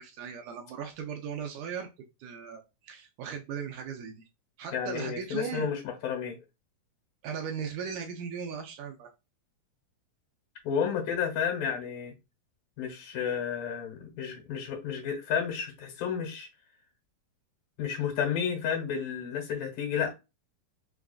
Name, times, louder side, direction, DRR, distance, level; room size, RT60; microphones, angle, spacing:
voice 1, 0.0-1.9 2.2-4.2 4.6-5.7 7.2-9.1, right 6 dB, 80° right, 1.9 m, -37 dB
voice 2, 4.7-6.4 10.6-12.1 12.8-16.5 17.8-20.1, left 7 dB, 75° left, 2.8 m, -31 dB
5.8 x 2.4 x 2.3 m
omnidirectional pair, 3.9 m